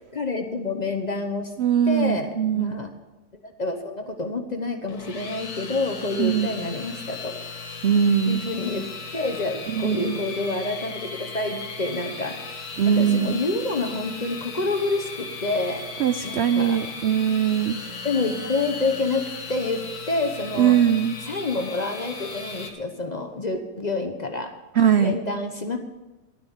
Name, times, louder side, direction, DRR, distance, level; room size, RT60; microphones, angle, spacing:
voice 1, 0.1-1.5 1.8-2.9 3.4-7.4 8.3-8.9 9.1-12.5 12.9-15.9 16.2-16.8 18.0-20.8 21.2-24.5 25.0-25.8, left 3 dB, 30° left, 5 dB, 0.9 m, -28 dB
voice 2, 1.6-2.7 6.2-6.5 7.8-8.4 9.8-10.2 12.8-13.4 16.0-17.8 20.6-21.1 24.8-25.2, right 8 dB, 65° right, 10 dB, 0.6 m, -21 dB
sound 1, 4.9-22.7, left 4 dB, 75° left, 2.0 m, -37 dB
12.0 x 9.6 x 7.2 m, 1.1 s
omnidirectional pair, 1.7 m